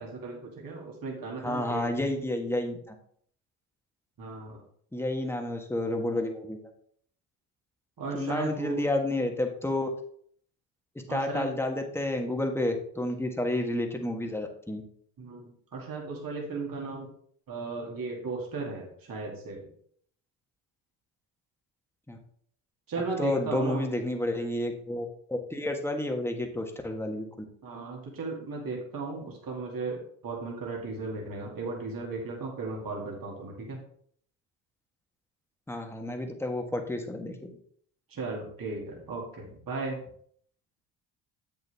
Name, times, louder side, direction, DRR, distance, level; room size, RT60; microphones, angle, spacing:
voice 1, 0.0-1.9 4.2-4.6 8.0-8.9 11.1-11.5 15.2-17.1 17.5-19.7 22.9-23.9 27.6-33.8 38.1-40.0, right 3 dB, 50° right, -1 dB, 2.5 m, -36 dB
voice 2, 1.4-2.9 4.9-6.7 8.1-9.9 11.1-14.8 22.1-22.2 23.2-27.3 35.7-37.6, left 1 dB, 5° left, 3 dB, 1.5 m, -30 dB
7.7 x 6.9 x 3.5 m, 0.62 s
supercardioid pair, 65°, 45 cm